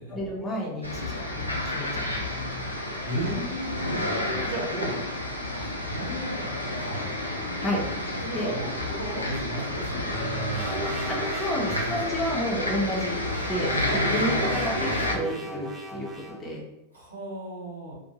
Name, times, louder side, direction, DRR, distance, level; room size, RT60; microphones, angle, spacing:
voice 1, 0.1-2.0 7.6-7.8 8.3-8.5 11.1-13.2 13.5-16.6, equal, 15° left, -3 dB, 0.7 m, -31 dB
sound 1, 0.8-15.2, left 1 dB, 85° left, 0.4 m, -30 dB
voice 2, 3.0-5.0 5.5-7.1 8.2-11.1 11.6-12.0 13.7-14.2 16.9-18.0, right 1 dB, 80° right, -6 dB, 1.1 m, -35 dB
sound 2, 10.5-12.1 12.9-16.5, right 1 dB, 15° right, 0.4 m, -36 dB
2.6 x 2.1 x 2.8 m, 0.89 s
figure-of-eight pair, 90°, 0 cm